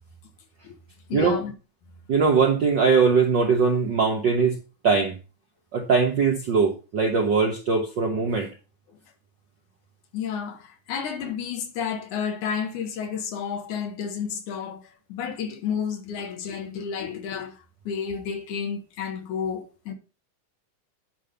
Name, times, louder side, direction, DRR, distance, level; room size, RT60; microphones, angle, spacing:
voice 1, 1.1-1.5 10.1-17.6 17.9-19.9, left 7 dB, 75° left, 2.7 m, -31 dB
voice 2, 2.1-5.2 5.7-8.5, right 5 dB, 65° right, 1.1 m, -21 dB
10.0 x 3.5 x 6.8 m
omnidirectional pair, 3.6 m